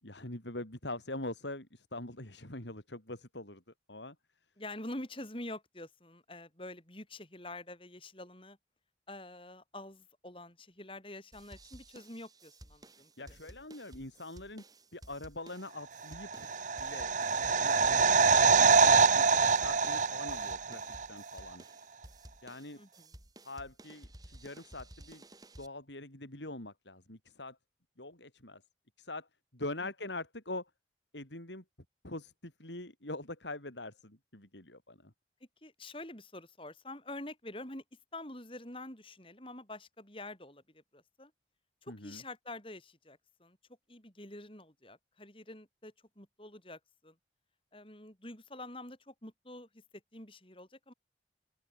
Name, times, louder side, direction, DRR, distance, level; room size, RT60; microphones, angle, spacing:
voice 1, 0.0-3.6 3.9-4.2 13.2-14.6 14.9-16.5 16.8-21.6 22.4-22.8 23.4-25.2 25.6-27.6 28.0-28.6 29.0-29.3 29.5-30.7 31.1-31.6 32.0-35.1 41.9-42.2, left 2 dB, 85° left, 6.2 m, -44 dB
voice 2, 4.6-8.6 9.1-13.1 13.4-13.5 22.7-23.1 29.8-29.9 35.6-37.8 38.1-41.3 41.8-43.6 43.9-47.1 47.7-49.7 50.1-50.9, left 1 dB, 30° left, 5.9 m, -46 dB
sound 1, 11.3-25.7, right 1 dB, 20° right, 3.8 m, -54 dB
sound 2, 16.2-21.1 21.3-21.4, right 5 dB, 45° right, 0.7 m, -25 dB
open air
head